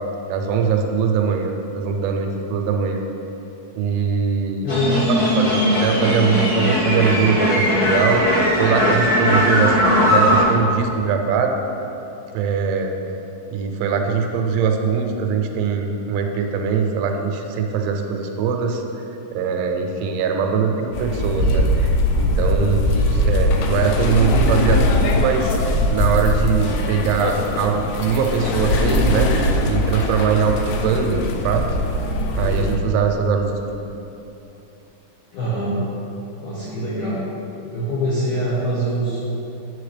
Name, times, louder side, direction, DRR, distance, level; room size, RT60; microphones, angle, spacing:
voice 1, 0.3-3.0 3.8-4.7 5.4-8.2 8.6-9.8 10.1-11.6 12.3-12.9 13.5-18.8 19.3-25.6 25.9-29.3 29.7-31.6 32.3-33.8, right 6 dB, 85° right, 3 dB, 3.1 m, -22 dB
voice 2, 4.6-5.3 35.3-35.8 36.4-37.2 37.7-39.2, equal, 70° left, -10 dB, 2.0 m, -24 dB
sound 1, 4.7-10.4, equal, 45° left, 1.7 m, -18 dB
sound 2, 20.9-32.7, left 1 dB, 90° left, 2.3 m, -20 dB
9.3 x 7.1 x 3.3 m, 2.9 s
omnidirectional pair, 5.4 m